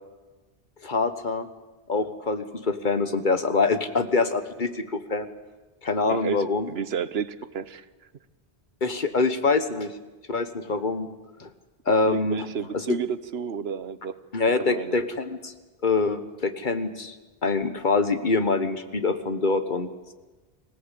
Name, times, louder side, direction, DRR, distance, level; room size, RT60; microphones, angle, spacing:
voice 1, 0.8-1.5 1.9-5.3 5.8-6.7 8.8-9.9 10.3-11.1 11.4-11.5 11.9-12.4 14.3-15.5 15.8-17.2 17.4-19.9, left 3 dB, 50° left, 10 dB, 1.5 m, -25 dB
voice 2, 6.1-7.9 12.1-14.2 14.5-15.0, right 7 dB, 70° right, 15 dB, 1.1 m, -32 dB
25.5 x 17.0 x 8.4 m, 1.2 s
omnidirectional pair, 1.1 m